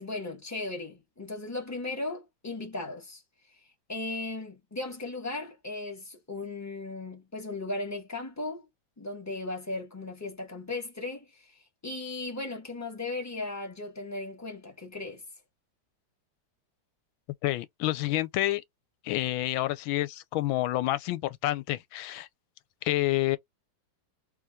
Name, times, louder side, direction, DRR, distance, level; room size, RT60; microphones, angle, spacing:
voice 1, 0.0-3.2 3.9-8.6 9.0-11.5 11.8-15.2, left 2 dB, 10° left, 1.0 m, -36 dB
voice 2, 17.4-18.6 19.0-22.3 22.8-23.4, left 16 dB, 85° left, 1.4 m, -28 dB
3.6 x 2.8 x 2.3 m
omnidirectional pair, 2.1 m